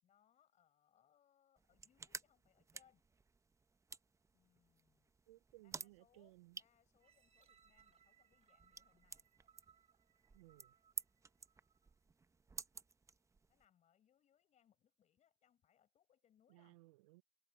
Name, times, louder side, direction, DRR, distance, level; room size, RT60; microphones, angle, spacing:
voice 1, 0.0-3.0 4.3-5.1 5.6-9.3 13.5-16.8, left 9 dB, 45° left, 7.4 m, -75 dB
sound 1, 1.6-13.6, right 4 dB, 15° right, 1.0 m, -54 dB
voice 2, 5.3-6.6 10.3-10.7 16.5-17.2, right 21 dB, 80° right, 0.5 m, -62 dB
sound 2, 7.0-11.9 12.5-12.6, right 8 dB, 40° right, 3.9 m, -72 dB
hypercardioid pair, 80°, 17 cm